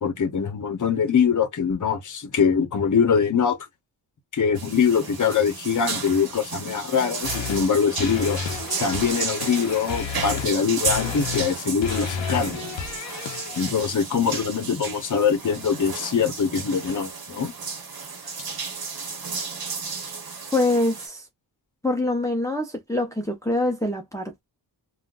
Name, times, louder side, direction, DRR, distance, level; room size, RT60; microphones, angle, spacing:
voice 1, 0.0-3.6 4.3-8.4 8.8-12.6 13.6-17.5, left 6 dB, 45° left, 0.8 m, -23 dB
sound 1, 4.6-21.1, right 5 dB, 55° right, 1.0 m, -33 dB
sound 2, 7.2-7.7 8.0-10.6 10.8-11.5 11.8-13.7, left 7 dB, 85° left, 0.7 m, -31 dB
voice 2, 20.5-21.2 21.8-24.4, left 2 dB, 5° left, 0.6 m, -24 dB
3.7 x 2.2 x 2.4 m
wide cardioid pair, 145°, 43 cm